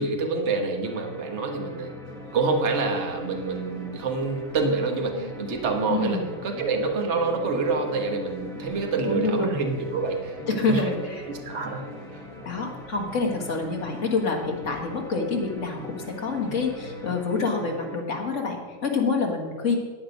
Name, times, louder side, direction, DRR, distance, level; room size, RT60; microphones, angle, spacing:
voice 1, 0.0-1.9 2.3-10.9 11.3-12.2, right 3 dB, 40° right, 3 dB, 1.5 m, -27 dB
sound 1, 0.8-18.0, left 2 dB, ahead, 0.9 m, -43 dB
sound 2, 2.0-17.1, left 2 dB, 85° left, 2.6 m, -45 dB
voice 2, 5.9-6.2 9.0-9.5 10.5-11.3 12.4-19.8, left 4 dB, 40° left, 1 dB, 1.9 m, -27 dB
12.5 x 8.7 x 5.3 m, 1.5 s
omnidirectional pair, 2.1 m